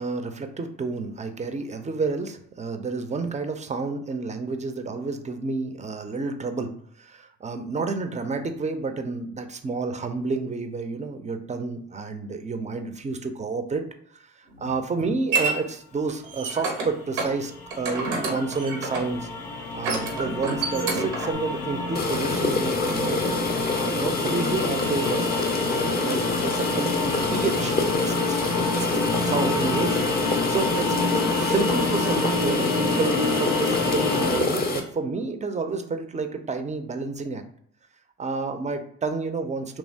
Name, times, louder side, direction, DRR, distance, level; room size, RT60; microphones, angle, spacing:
voice 1, 0.0-13.9 14.1-19.3 19.7-23.3 23.8-25.3 25.6-27.0 27.3-30.9 31.3-37.4 38.2-39.8, right 4 dB, 20° right, 7 dB, 0.4 m, -30 dB
sound 1, 14.5-15.5 16.1-16.9 17.2-17.3 17.7-19.2 19.7-21.3, right 4 dB, 80° right, 0.8 m, -28 dB
sound 2, 16.9-34.4, left 3 dB, 85° left, 0.5 m, -28 dB
sound 3, 21.9-34.8, left 3 dB, 25° left, 0.6 m, -27 dB
2.9 x 2.3 x 2.7 m, 0.66 s
hypercardioid pair, 45°, 36 cm